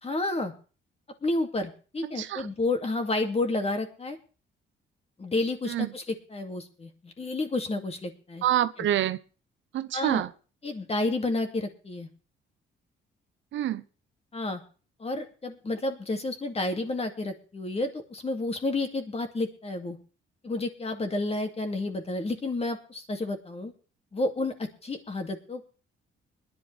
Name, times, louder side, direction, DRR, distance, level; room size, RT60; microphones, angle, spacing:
voice 1, 0.0-0.5 1.2-4.2 5.2-8.4 9.9-10.2 10.6-12.1 14.3-14.6 15.0-20.0 20.4-23.7 24.1-25.6, left 2 dB, 30° left, 2.4 m, -30 dB
voice 2, 2.0-2.5 5.7-5.9 8.4-9.2 9.7-10.3 13.5-13.8, right 12 dB, 70° right, 0.7 m, -27 dB
21.0 x 11.0 x 3.4 m
cardioid pair, 90°, 20 cm